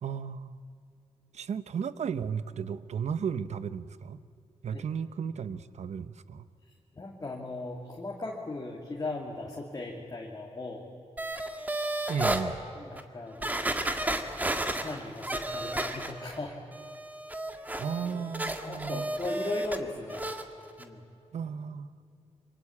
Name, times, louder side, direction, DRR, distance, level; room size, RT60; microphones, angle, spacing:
voice 1, 0.0-0.6 1.3-4.2 4.6-6.5 12.1-12.6 17.8-19.1 21.3-21.9, right 7 dB, 75° right, 14 dB, 0.9 m, -34 dB
voice 2, 6.9-10.8 12.8-13.8 14.8-16.6 17.5-17.7 18.0-18.3 18.6-20.3 20.8-21.0, left 2 dB, 30° left, -1 dB, 2.6 m, -38 dB
sound 1, 11.2-12.4 13.0-13.1 13.4-16.4 16.7-19.8 20.1-20.4 20.8-20.9, right 1 dB, 15° right, 1.7 m, -32 dB
26.5 x 24.5 x 8.6 m, 2.5 s
wide cardioid pair, 125°, 12 cm